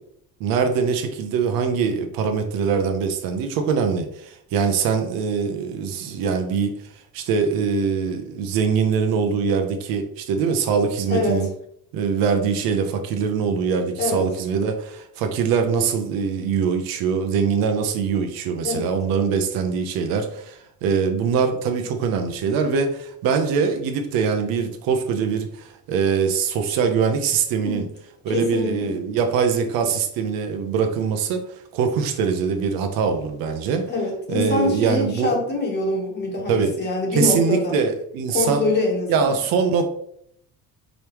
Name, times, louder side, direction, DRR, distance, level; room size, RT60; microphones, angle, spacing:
voice 1, 0.4-6.8 7.1-11.5 11.9-27.8 28.2-31.4 31.7-33.8 34.3-35.3 36.5-36.7 37.1-38.6 39.1-39.9, right 6 dB, 75° right, 5 dB, 0.8 m, -23 dB
voice 2, 11.1-11.5 14.0-14.3 18.6-18.9 27.6-27.9 28.3-28.9 33.9-37.8 38.3-39.4, left 2 dB, 30° left, 0 dB, 1.3 m, -24 dB
5.1 x 3.4 x 3.0 m, 0.69 s
cardioid pair, 150°, 35 cm